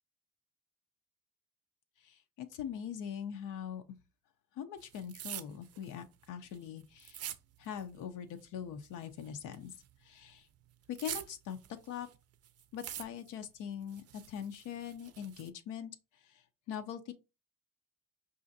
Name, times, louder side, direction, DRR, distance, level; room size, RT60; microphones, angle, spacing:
voice 1, 2.0-3.8 4.6-7.2 7.6-9.7 10.0-10.5 10.9-11.6 11.9-12.1 12.7-15.9 16.2-16.4 16.7-17.1, left 8 dB, 85° left, 0.5 m, -42 dB
sound 1, 4.8-8.0 8.3-10.0 10.3-12.2 12.4-13.5 13.8-15.5, right 10 dB, 55° right, 0.4 m, -46 dB
4.9 x 2.5 x 2.6 m
cardioid pair, 90°, 30 cm